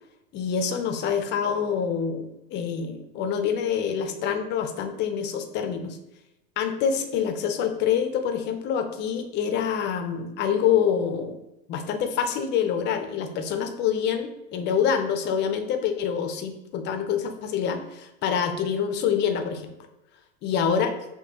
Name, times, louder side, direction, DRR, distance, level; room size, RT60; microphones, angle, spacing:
voice 1, 0.3-6.0 6.6-11.4 11.7-19.7 20.4-20.9, left 7 dB, 30° left, 7 dB, 0.5 m, -26 dB
5.8 x 2.7 x 2.9 m, 0.93 s
hypercardioid pair, 100°, 41 cm